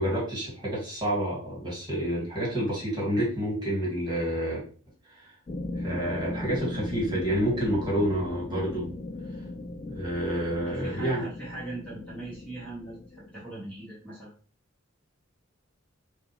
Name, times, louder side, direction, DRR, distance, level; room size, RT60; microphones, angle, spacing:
voice 1, 0.0-4.6 5.1-5.3 5.8-8.9 9.9-11.2, equal, 20° right, -5 dB, 2.1 m, -29 dB
sound 1, 5.5-13.9, left 2 dB, 25° left, 0.3 m, -38 dB
voice 2, 10.6-14.3, right 2 dB, 5° left, -8 dB, 1.7 m, -40 dB
6.0 x 2.5 x 3.2 m, 0.39 s
head